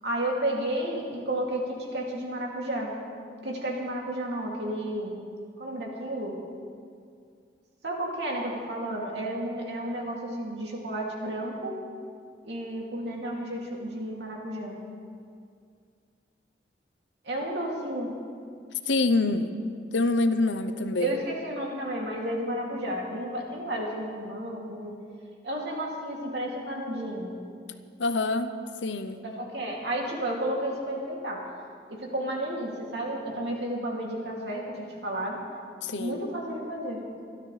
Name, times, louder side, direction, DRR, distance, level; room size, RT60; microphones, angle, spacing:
voice 1, 0.0-2.9 3.4-5.1 5.6-6.4 7.8-11.8 12.4-14.8 17.2-18.2 21.0-24.9 25.4-27.4 29.2-31.4 31.9-35.4 36.0-37.0, right 1 dB, 70° right, -2 dB, 2.7 m, -32 dB
voice 2, 18.9-21.2 28.0-29.2 35.8-36.3, left 2 dB, 85° left, 9 dB, 0.9 m, -26 dB
25.0 x 12.5 x 3.4 m, 2.2 s
head